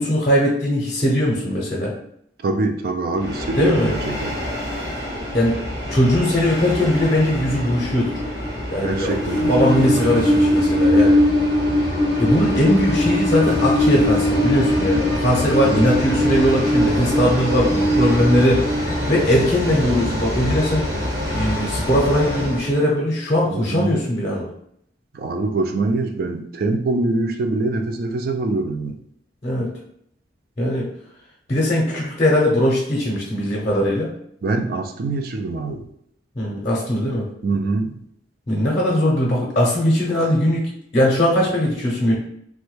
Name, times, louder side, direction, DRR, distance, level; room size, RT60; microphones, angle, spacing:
voice 1, 0.0-1.9 3.5-3.9 5.3-5.6 5.9-8.2 8.7-9.2 9.5-11.2 12.2-18.6 19.1-20.8 21.3-24.5 29.4-29.7 30.6-30.9 31.5-34.1 36.4-37.2 38.5-42.1, equal, 35° left, -4 dB, 0.7 m, -20 dB
voice 2, 2.4-4.4 8.8-10.2 15.5-15.8 23.5-24.0 25.1-29.0 34.4-35.8 37.4-38.0, right 2 dB, 55° right, 6 dB, 0.4 m, -24 dB
Train, 3.2-22.7, left 1 dB, 75° right, 1.1 m, -22 dB
sound 1, 9.7-21.3, left 1 dB, ahead, 0.7 m, -34 dB
3.2 x 2.2 x 3.1 m, 0.70 s
head